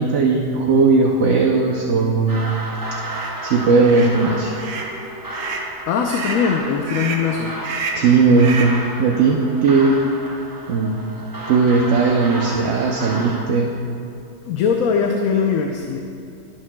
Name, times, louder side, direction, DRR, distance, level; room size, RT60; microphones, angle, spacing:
voice 1, 0.0-2.6 3.4-4.5 8.0-10.0 10.7-11.1 11.5-13.8, right 4 dB, 60° right, 0 dB, 0.9 m, -17 dB
sound 1, 2.3-13.4, right 1 dB, 25° right, 0.5 m, -32 dB
sound 2, 3.0-3.3 3.8-4.1 4.5-4.9 5.3-5.7 6.1-6.4 6.9-7.3 7.6-8.1 8.4-8.8, right 4 dB, 80° right, 1.3 m, -29 dB
voice 2, 5.9-7.5 14.4-16.0, left 6 dB, 75° left, 2 dB, 1.0 m, -20 dB
16.5 x 6.6 x 2.2 m, 2.5 s
omnidirectional pair, 1.5 m